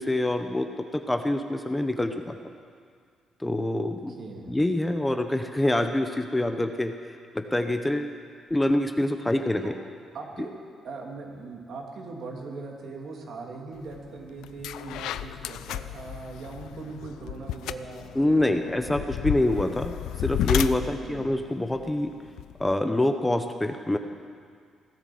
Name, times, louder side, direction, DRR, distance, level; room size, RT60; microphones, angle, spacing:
voice 1, 0.0-2.3 3.4-4.1 4.5-6.9 7.3-8.1 8.5-9.7 18.1-22.1 22.6-24.0, left 1 dB, 10° left, 6 dB, 1.0 m, -26 dB
voice 2, 4.2-4.6 9.6-9.7 10.1-10.5 10.8-19.3 20.8-21.3, right 3 dB, 60° right, 0 dB, 2.7 m, -40 dB
sound 1, 13.9-14.1 14.4-22.7, left 12 dB, 85° left, 0.5 m, -33 dB
16.5 x 11.0 x 7.8 m, 2.1 s
cardioid pair, 90°, 0 cm